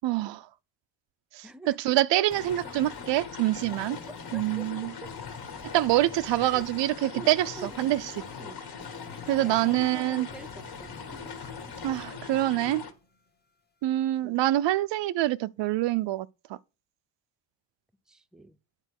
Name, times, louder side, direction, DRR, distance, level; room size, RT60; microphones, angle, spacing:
voice 1, 0.0-0.4 1.3-4.0 4.3-4.9 5.7-8.1 9.3-10.3 11.8-12.8 13.8-16.3, right 15 dB, 85° right, 0.5 m, -26 dB
voice 2, 1.4-2.0 4.0-4.7 5.0-5.1 6.4-6.7 7.1-7.8 8.4-8.6 9.2-11.2 14.2-14.4 18.1-18.6, right 1 dB, ahead, 0.6 m, -46 dB
sound 1, 2.3-12.9, left 6 dB, 60° left, 1.8 m, -41 dB
sound 2, 2.3-13.5, left 2 dB, 25° left, 1.0 m, -51 dB
9.0 x 4.5 x 6.4 m
cardioid pair, 115°, 42 cm